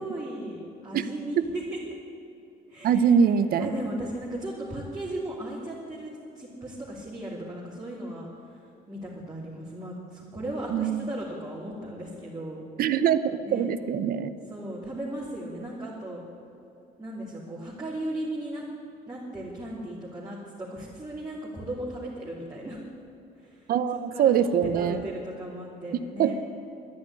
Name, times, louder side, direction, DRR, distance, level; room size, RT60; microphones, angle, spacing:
voice 1, 0.0-1.8 2.7-3.3 3.6-12.6 13.4-13.6 14.5-16.2 17.0-18.7 19.1-22.8 23.4-23.7 24.1-24.5 24.7-26.3, right 1 dB, 20° right, -7 dB, 2.9 m, -36 dB
voice 2, 2.8-3.7 10.7-11.1 12.8-14.3 23.7-25.0 25.9-26.3, right 8 dB, 60° right, 12 dB, 0.8 m, -23 dB
11.0 x 10.0 x 9.8 m, 2.6 s
cardioid pair, 110°, 17 cm